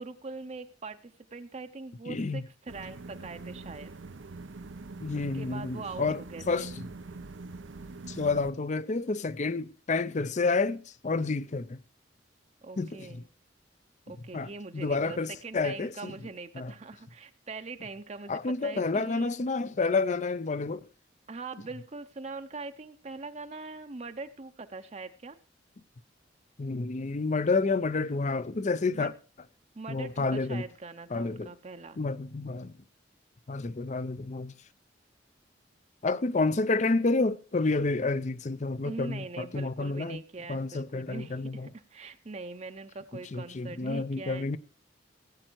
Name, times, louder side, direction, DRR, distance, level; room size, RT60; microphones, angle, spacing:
voice 1, 0.0-3.9 5.3-6.7 12.6-13.3 14.1-19.3 21.3-25.4 28.9-29.1 29.7-32.0 36.4-36.5 38.8-44.6, right 3 dB, 35° right, 0.6 m, -42 dB
voice 2, 2.1-2.4 5.0-6.2 6.5-6.9 8.1-11.8 12.8-13.2 14.3-15.3 15.5-16.1 16.6-16.7 18.3-20.8 26.6-29.1 29.9-30.6 31.1-31.5 32.0-32.7 33.5-34.5 36.0-40.2 40.5-41.7 43.3-44.6, left 3 dB, 40° left, 0.5 m, -29 dB
sound 1, 2.7-8.5, right 3 dB, 90° right, 0.6 m, -43 dB
16.5 x 9.0 x 4.6 m
head